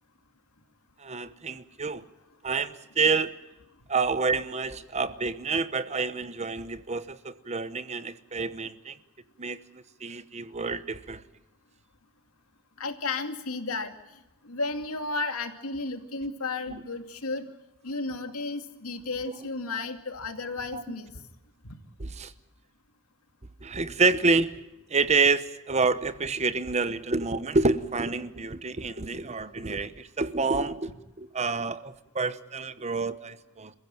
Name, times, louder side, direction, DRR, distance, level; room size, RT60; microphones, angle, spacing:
voice 1, 1.0-2.1 2.4-3.3 3.9-9.0 9.4-11.2 16.7-16.8 20.7-20.8 22.0-22.3 23.6-30.9 31.2-33.7, right 4 dB, 30° right, 14 dB, 0.9 m, -28 dB
voice 2, 12.8-14.0 14.4-17.5 17.8-21.1 21.6-21.8, left 3 dB, 75° left, 7 dB, 2.5 m, -33 dB
27.5 x 15.5 x 9.0 m, 1.0 s
head